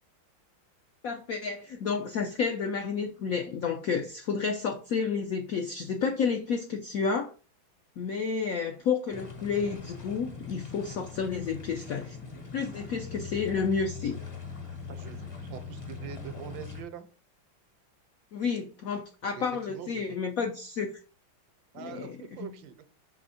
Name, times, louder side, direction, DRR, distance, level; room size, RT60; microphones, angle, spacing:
voice 1, 1.0-7.3 8.0-12.2 12.5-14.2 18.3-20.9 21.8-22.1 22.4-22.5, left 5 dB, 75° left, 4 dB, 0.8 m, -30 dB
sound 1, 9.1-16.8, left 5 dB, 35° left, 0.5 m, -41 dB
voice 2, 14.9-17.1 19.2-20.2 21.7-22.9, right 9 dB, 75° right, 10 dB, 1.4 m, -44 dB
5.2 x 3.3 x 5.5 m, 0.36 s
omnidirectional pair, 2.2 m